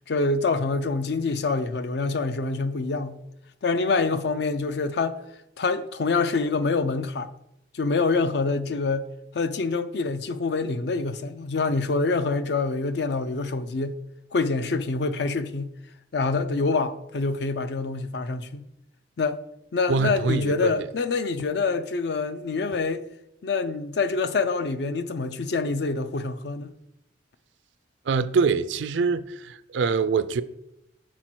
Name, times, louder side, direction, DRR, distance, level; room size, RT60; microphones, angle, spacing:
voice 1, 0.1-3.2 3.6-5.2 5.6-7.3 7.7-9.1 9.3-14.0 14.3-15.7 16.1-18.6 19.2-19.4 19.7-23.0 23.4-26.7, left 3 dB, 60° left, 0.4 m, -26 dB
voice 2, 19.9-20.9 28.1-30.4, right 5 dB, 75° right, 0.4 m, -24 dB
6.7 x 4.4 x 4.4 m
head